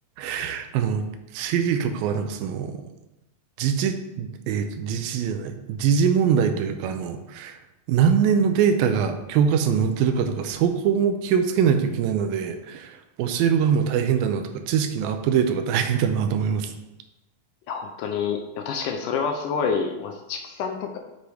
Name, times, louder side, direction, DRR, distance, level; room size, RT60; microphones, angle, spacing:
voice 1, 0.2-1.1 1.3-2.7 3.6-7.6 7.9-16.7, right 7 dB, 80° right, 7 dB, 2.4 m, -23 dB
voice 2, 17.7-21.0, left 6 dB, 75° left, 4 dB, 2.0 m, -28 dB
7.7 x 6.2 x 3.4 m, 0.94 s
omnidirectional pair, 4.2 m